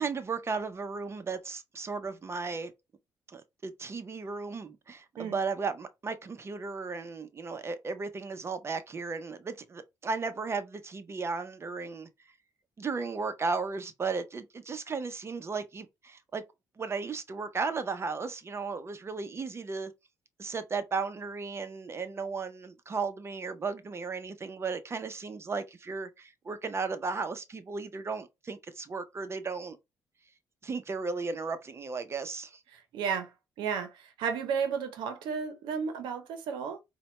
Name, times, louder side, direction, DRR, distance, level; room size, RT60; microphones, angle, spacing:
voice 1, 0.0-2.7 3.3-12.1 12.8-16.4 16.8-19.9 20.4-29.8 30.6-32.6, right 4 dB, 35° right, 0.6 m, -35 dB
voice 2, 32.7-33.3 33.6-36.8, right 6 dB, 80° right, 0.7 m, -33 dB
4.1 x 2.2 x 2.9 m
supercardioid pair, 75°, 8 cm